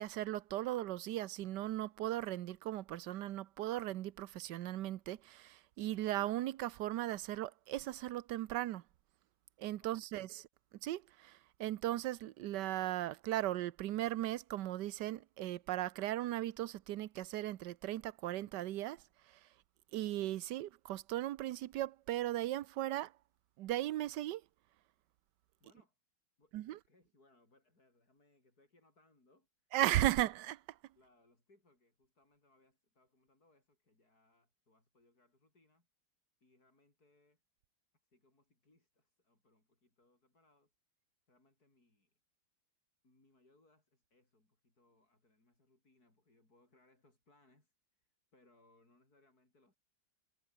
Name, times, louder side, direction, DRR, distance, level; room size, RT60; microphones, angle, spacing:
voice 1, 0.0-8.8 9.6-10.3 10.8-19.0 19.9-23.1 23.6-24.4 26.5-26.8 29.7-30.6, right 14 dB, 70° right, 1.3 m, -37 dB
voice 2, 9.8-10.3 25.6-26.0 26.4-30.1 31.0-35.9 36.4-37.4 38.0-40.7 41.3-42.2 43.0-49.8, left 2 dB, 50° left, 7.1 m, -71 dB
omnidirectional pair, 2.1 m